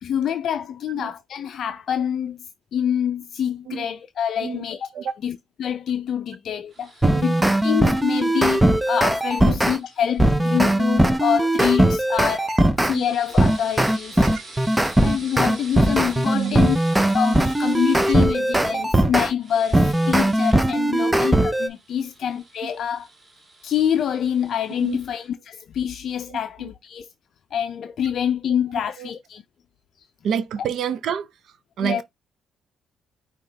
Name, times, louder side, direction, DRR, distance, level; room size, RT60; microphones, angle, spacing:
voice 1, 0.0-2.4 2.7-4.9 5.2-5.3 5.6-6.9 7.2-12.5 12.8-14.2 15.0-16.8 17.1-23.1 23.6-27.1 27.5-29.4 31.8-32.0, left 9 dB, 60° left, 0.4 m, -26 dB
voice 2, 4.4-4.7 4.9-5.2 7.1-7.2 9.5-9.6 12.9-13.0 14.1-14.4 16.3-16.7 18.1-18.2 18.7-18.8 20.9-21.0 22.6-22.7 24.7-25.0 26.3-26.7 28.5-28.6 29.0-29.1 30.2-32.0, right 8 dB, 70° right, 0.5 m, -29 dB
sound 1, 6.7-12.0 12.8-18.3 19.4-20.6 21.6-25.3, right 2 dB, 30° right, 1.8 m, -45 dB
sound 2, 7.0-9.8 10.2-13.0 13.4-19.3 19.7-21.7, right 1 dB, 10° right, 0.5 m, -19 dB
5.5 x 2.9 x 3.2 m
cardioid pair, 105°, 0 cm